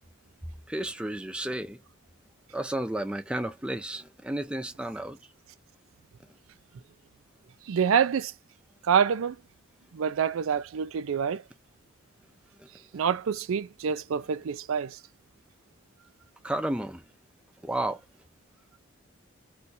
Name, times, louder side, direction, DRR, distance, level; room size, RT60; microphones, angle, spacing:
voice 1, 0.7-1.8 2.5-5.2 16.4-17.0 17.6-18.0, right 1 dB, 5° right, 0.5 m, -32 dB
voice 2, 7.7-8.3 8.9-9.3 9.9-11.4 12.9-15.0, right 7 dB, 90° right, 0.4 m, -26 dB
2.6 x 2.3 x 4.1 m
head